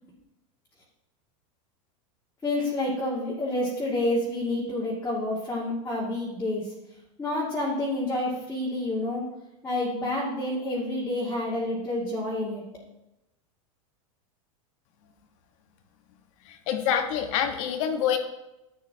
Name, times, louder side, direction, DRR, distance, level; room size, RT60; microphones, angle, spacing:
voice 1, 2.4-6.7 7.2-9.2 9.6-12.6, left 1 dB, 15° left, -6 dB, 2.2 m, -28 dB
voice 2, 16.4-18.2, left 9 dB, 65° left, 6 dB, 1.4 m, -26 dB
11.0 x 8.7 x 2.8 m, 0.94 s
supercardioid pair, 120°, 18 cm